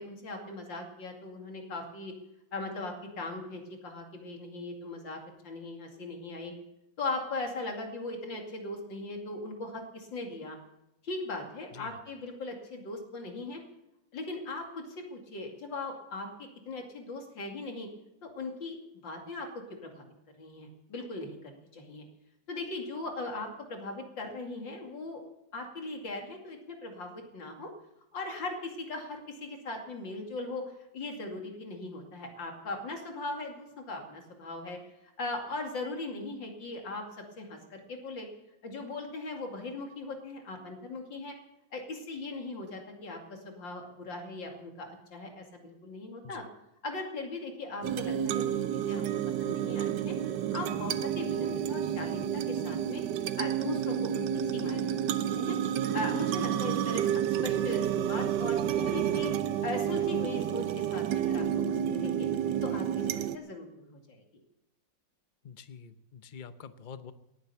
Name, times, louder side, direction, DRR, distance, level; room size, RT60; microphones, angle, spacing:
voice 1, 0.0-2.1 2.5-6.5 7.0-10.6 11.0-13.6 14.1-17.9 18.2-18.8 19.0-19.5 19.8-22.1 22.5-25.2 25.5-27.7 28.1-34.8 35.2-37.0 37.4-38.3 38.6-41.3 41.7-46.4 46.8-48.4 48.7-49.0 49.4-50.2 50.5-53.0 53.4-55.1 55.4-55.6 55.9-59.3 59.6-62.3 62.6-64.2, left 2 dB, 75° left, 3 dB, 3.1 m, -39 dB
sound 1, 47.8-63.4, right 9 dB, 70° right, 1.3 m, -30 dB
voice 2, 65.4-67.1, left 6 dB, 50° left, 11 dB, 0.5 m, -47 dB
19.0 x 9.3 x 6.9 m, 0.90 s
omnidirectional pair, 2.0 m